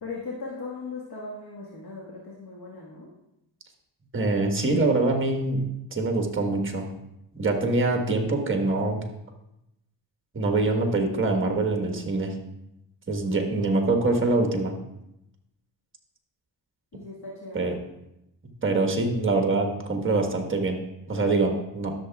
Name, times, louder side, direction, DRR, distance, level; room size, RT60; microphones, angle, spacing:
voice 1, 0.0-3.1 16.9-17.8 21.1-21.6, left 3 dB, 55° left, -4 dB, 1.6 m, -38 dB
voice 2, 4.1-5.6 5.9-6.9 7.3-9.0 10.3-12.3 13.1-14.7 17.5-17.7 18.6-20.8 21.1-21.9, right 2 dB, 25° right, 2 dB, 1.4 m, -24 dB
13.0 x 6.8 x 2.3 m, 0.87 s
cardioid pair, 80°, 45 cm